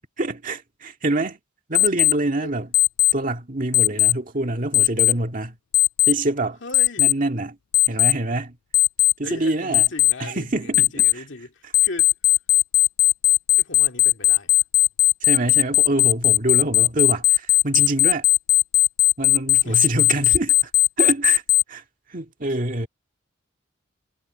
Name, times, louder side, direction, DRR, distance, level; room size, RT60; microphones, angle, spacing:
voice 1, 0.2-1.4 1.7-2.7 3.1-5.6 6.1-6.6 7.0-7.5 7.9-8.6 9.2-9.9 10.2-11.2 15.2-18.3 19.2-20.7 21.0-21.4 21.7-21.8 22.1-22.9, right 2 dB, 40° right, 2.0 m, -25 dB
Alarm, 1.7-2.1 2.7-3.1 3.7-4.1 4.7-5.1 5.7-6.1 6.7-7.1 7.7-8.1 8.7-9.1 9.7-10.1 10.7-11.1 11.7-21.6, left 20 dB, 90° left, 0.4 m, -16 dB
voice 2, 6.6-7.1 9.2-12.1 13.6-14.5 19.6-19.8 22.5-22.6, left 2 dB, 65° left, 2.4 m, -38 dB
head